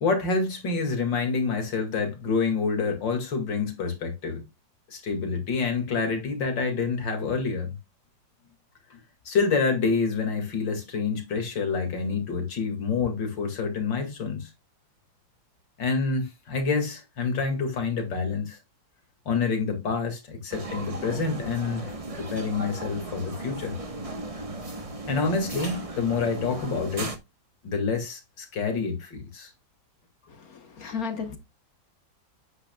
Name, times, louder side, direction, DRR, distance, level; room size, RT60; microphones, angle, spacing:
voice 1, 0.0-4.4 4.9-7.7 8.9-9.0 9.3-14.5 15.8-18.6 19.3-23.7 25.1-27.1 27.6-29.5, left 4 dB, 70° left, 2.8 m, -27 dB
sound 1, 20.5-27.2, right 2 dB, 25° right, 0.9 m, -36 dB
voice 2, 30.3-31.4, left 6 dB, 55° left, 1.5 m, -34 dB
9.6 x 8.5 x 2.3 m
omnidirectional pair, 2.1 m